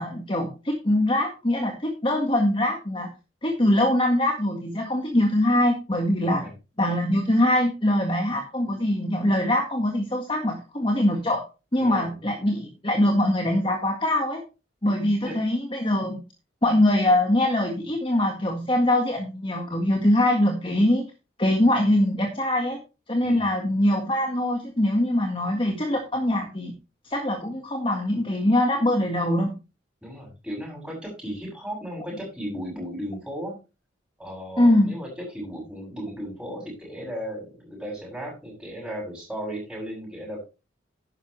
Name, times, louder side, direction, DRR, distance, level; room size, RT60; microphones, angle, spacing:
voice 1, 0.0-3.1 3.4-6.4 6.8-11.4 11.7-14.4 14.8-16.2 16.6-21.0 21.4-22.8 23.1-26.7 27.0-29.5 34.6-34.9, left 1 dB, 25° left, 3 dB, 1.7 m, -23 dB
voice 2, 6.2-6.5 11.8-12.2 15.2-15.4 23.2-23.5 30.0-33.6 34.2-40.5, equal, 5° right, -1 dB, 7.2 m, -35 dB
12.0 x 9.9 x 3.2 m, 0.29 s
head